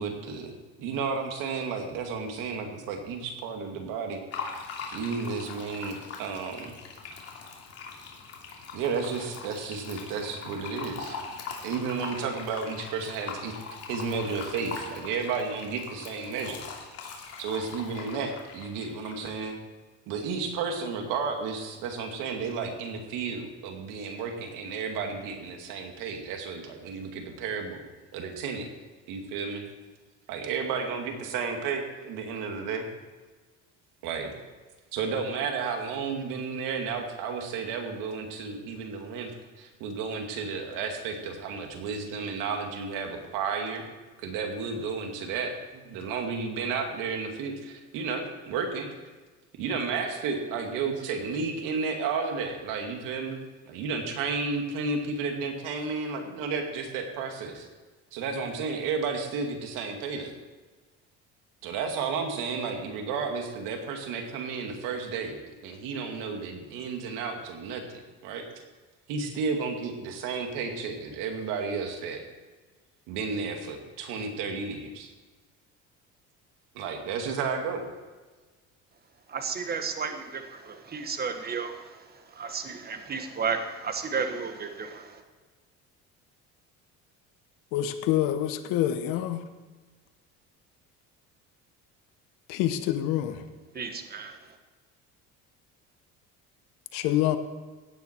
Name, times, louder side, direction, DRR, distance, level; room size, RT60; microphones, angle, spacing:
voice 1, 0.0-4.2 4.9-6.7 8.7-11.2 11.6-16.6 17.4-19.6 20.1-27.8 28.1-28.7 29.1-29.7 30.3-32.9 34.0-34.3 34.9-39.3 39.6-43.8 44.2-48.9 49.5-57.7 58.1-60.4 61.6-68.4 69.1-72.2 73.1-75.1 76.7-77.9, right 5 dB, 85° right, 4 dB, 2.4 m, -32 dB
Fill (with liquid), 4.3-19.5, left 5 dB, 50° left, 2.9 m, -41 dB
voice 2, 79.3-82.0 82.3-85.2 93.7-94.4, right 5 dB, 30° right, 7 dB, 1.5 m, -33 dB
voice 3, 87.7-89.4 92.5-93.4 96.9-97.4, left 12 dB, 85° left, 9 dB, 1.2 m, -26 dB
16.5 x 9.5 x 4.6 m, 1.3 s
cardioid pair, 125°, 31 cm